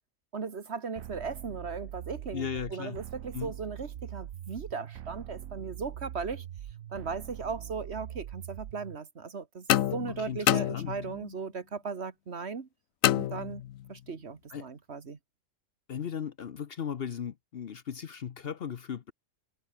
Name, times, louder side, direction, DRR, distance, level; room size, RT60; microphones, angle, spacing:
voice 1, 0.3-6.5 6.9-12.7 13.1-13.6 13.9-15.2, right 5 dB, 55° right, 1.8 m, -37 dB
sound 1, 1.0-9.0, right 11 dB, 85° right, 1.2 m, -42 dB
voice 2, 2.3-3.0 3.3-3.5 10.2-10.4 10.7-11.0 14.5-14.7 15.9-19.1, left 8 dB, 55° left, 0.9 m, -37 dB
sound 2, 9.7-11.3 13.0-14.0, left 12 dB, 80° left, 1.1 m, -28 dB
omnidirectional pair, 1.4 m